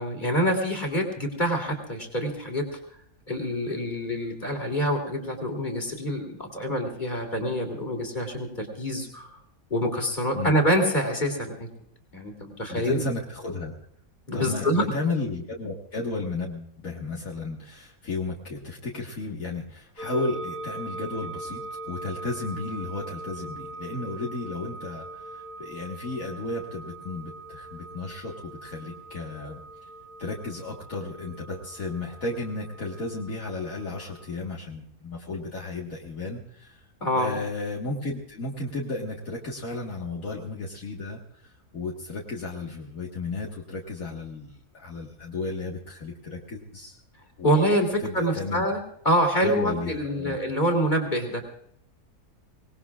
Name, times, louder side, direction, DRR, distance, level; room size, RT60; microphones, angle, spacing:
voice 1, 0.0-2.7 3.3-9.3 9.7-11.7 12.1-13.0 14.3-14.9 37.0-37.4 47.4-51.4, equal, 30° left, 2 dB, 3.1 m, -26 dB
voice 2, 12.7-13.7 14.3-29.6 30.2-36.8 37.2-47.0 47.4-47.6 48.0-48.7 49.4-50.4, left 3 dB, 65° left, -2 dB, 2.1 m, -33 dB
sound 1, 20.0-34.3, right 2 dB, 30° right, 2.0 m, -41 dB
25.0 x 19.0 x 2.4 m, 0.67 s
omnidirectional pair, 1.6 m